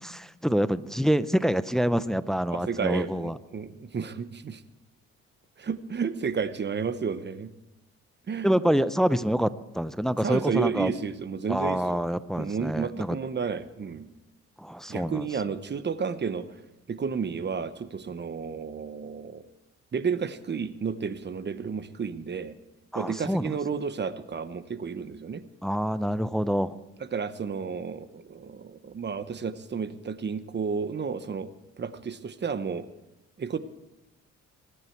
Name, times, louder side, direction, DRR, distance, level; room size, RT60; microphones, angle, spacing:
voice 1, 0.0-3.4 8.4-10.9 11.5-13.2 14.6-15.3 22.9-23.6 25.6-26.8, equal, ahead, 15 dB, 0.5 m, -26 dB
voice 2, 2.5-4.6 5.6-7.5 8.3-8.5 10.2-12.0 12.4-14.1 14.9-16.5 16.9-19.4 19.9-22.5 22.9-25.4 27.1-31.5 31.8-32.9 33.4-33.6, right 6 dB, 35° right, 13 dB, 1.0 m, -32 dB
23.0 x 9.9 x 4.6 m, 0.98 s
cardioid pair, 90°, 30 cm